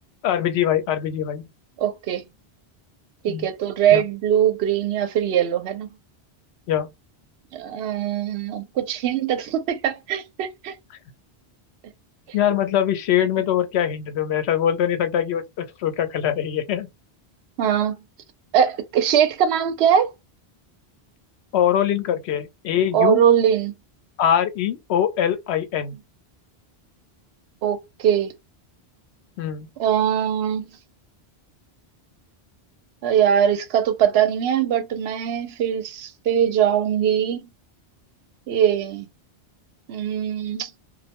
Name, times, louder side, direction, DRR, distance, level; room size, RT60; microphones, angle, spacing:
voice 1, 0.2-1.5 3.3-3.5 3.9-4.0 6.7-6.9 12.3-16.9 21.5-23.2 24.2-25.9 29.4-29.7, left 10 dB, 80° left, 0.9 m, -23 dB
voice 2, 1.8-2.2 3.2-5.9 7.5-10.8 17.6-17.9 18.5-20.1 22.9-23.7 27.6-28.3 29.8-30.7 33.0-37.5 38.5-39.1 39.9-40.7, right 9 dB, 80° right, 0.8 m, -21 dB
2.2 x 2.1 x 2.8 m
omnidirectional pair, 1.1 m